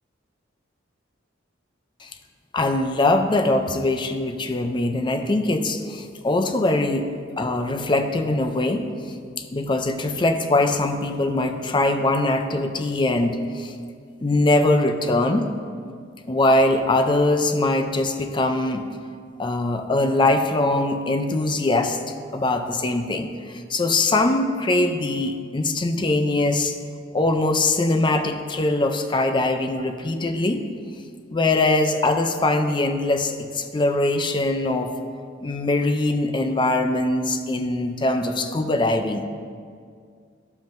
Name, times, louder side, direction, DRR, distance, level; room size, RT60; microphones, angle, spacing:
voice 1, 2.5-7.1 7.4-8.9 9.4-13.7 14.2-15.5 16.3-18.9 19.4-22.0 22.3-26.8 27.1-30.6 31.3-34.9 35.4-39.2, left 2 dB, 25° left, 7 dB, 0.4 m, -22 dB
12.0 x 7.2 x 2.6 m, 2.2 s
head